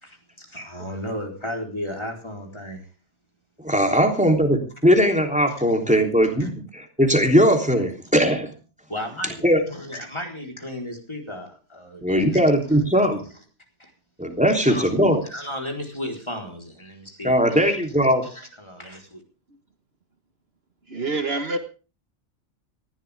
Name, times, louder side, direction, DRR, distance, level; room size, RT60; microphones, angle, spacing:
voice 1, 0.0-2.8 3.9-4.0 5.9-6.0 6.4-6.5 8.9-9.3 9.7-12.4 13.8-13.9 14.6-14.9 15.3-17.8 18.2-19.2, left 1 dB, 20° left, 2 dB, 4.3 m, -34 dB
voice 2, 3.6-8.5 9.4-9.6 12.0-13.2 14.2-15.2 17.2-18.3, equal, 5° right, 4 dB, 3.4 m, -19 dB
voice 3, 20.9-21.6, right 3 dB, 55° right, 7 dB, 1.8 m, -26 dB
19.5 x 15.5 x 3.6 m, 0.35 s
omnidirectional pair, 1.3 m